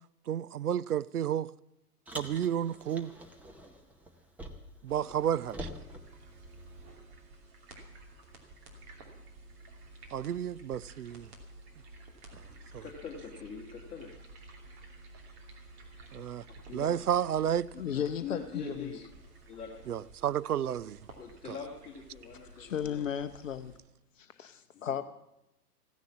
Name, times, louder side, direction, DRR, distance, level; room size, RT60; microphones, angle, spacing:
voice 1, 0.3-1.5 2.1-3.1 4.8-5.7 10.1-11.3 12.7-12.8 16.1-16.4 16.7-17.7 19.9-21.0, right 10 dB, 70° right, 0.5 m, -31 dB
Car, 2.1-4.9 5.1-6.9, equal, 5° right, 0.8 m, -46 dB
sound 1, 4.9-23.8, right 2 dB, 40° right, 2.8 m, -52 dB
voice 2, 12.5-14.1 16.7-17.0 17.7-19.0 19.5-19.8 21.2-23.1 24.7-25.0, left 6 dB, 15° left, 1.8 m, -44 dB
voice 3, 17.8-18.9 22.6-23.8 24.2-25.0, left 9 dB, 55° left, 0.8 m, -35 dB
15.5 x 10.5 x 7.2 m
figure-of-eight pair, 110°, 47 cm